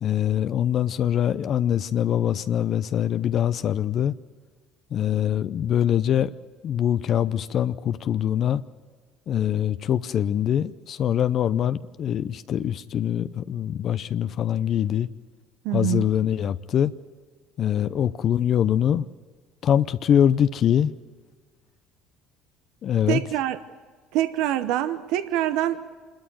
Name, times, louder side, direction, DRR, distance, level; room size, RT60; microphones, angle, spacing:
voice 1, 0.0-4.1 4.9-6.3 6.6-8.6 9.3-15.1 15.7-16.9 17.6-19.1 19.6-20.9 22.8-23.2, left 10 dB, 50° left, 0.5 m, -23 dB
voice 2, 15.6-16.0 23.1-23.6 24.1-25.8, right 13 dB, 75° right, 0.8 m, -25 dB
26.5 x 13.0 x 9.2 m
supercardioid pair, 90°, 0 cm